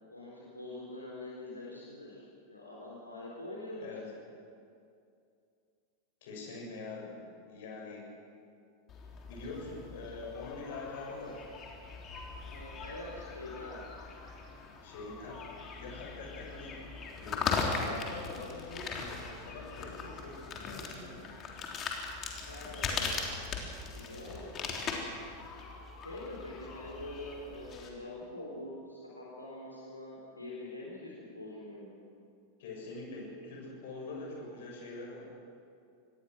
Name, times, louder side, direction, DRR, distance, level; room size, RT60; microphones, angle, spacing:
voice 1, 0.0-2.2 2.5-4.0 12.4-13.8 22.4-23.1 23.9-24.9 26.0-32.0, left 1 dB, 85° left, -5 dB, 4.2 m, -44 dB
voice 2, 6.2-8.1 9.3-11.4 14.8-15.5 15.8-16.8 17.1-21.3 32.6-35.3, left 3 dB, 55° left, -2 dB, 7.6 m, -44 dB
sound 1, 8.9-27.9, left 4 dB, 30° left, 3.6 m, -40 dB
25.5 x 20.0 x 6.3 m, 2.4 s
figure-of-eight pair, 90°, 0 cm